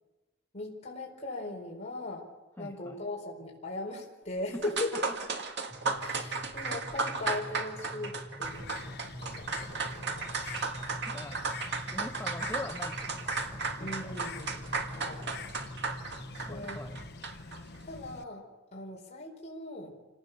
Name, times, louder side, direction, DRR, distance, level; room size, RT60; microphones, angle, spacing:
voice 1, 0.5-2.3 2.6-4.9 6.0-10.5 13.8-14.6 15.0-15.3 16.5-16.8 17.8-20.0, left 2 dB, 35° left, -2 dB, 4.8 m, -39 dB
voice 2, 2.6-3.1 4.5-4.6 11.1-11.5 11.8-14.1 16.5-17.1, left 1 dB, 15° left, 5 dB, 1.0 m, -43 dB
sound 1, 4.3-4.4 4.6-17.6, right 4 dB, 60° right, 2.1 m, -35 dB
sound 2, 5.7-17.2, equal, 10° right, 1.0 m, -46 dB
Bird, 8.4-18.2, left 4 dB, 55° left, 0.9 m, -46 dB
28.0 x 18.5 x 6.9 m, 1.2 s
head